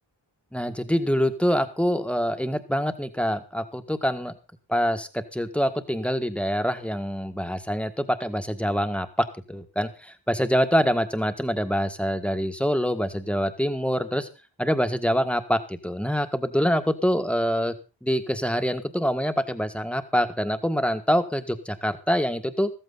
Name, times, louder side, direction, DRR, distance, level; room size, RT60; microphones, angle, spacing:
voice 1, 0.5-4.3 4.7-14.3 14.6-17.7 18.0-22.7, equal, 5° left, 8 dB, 1.6 m, -25 dB
14.5 x 14.5 x 4.1 m, 0.32 s
wide cardioid pair, 95°, 45 cm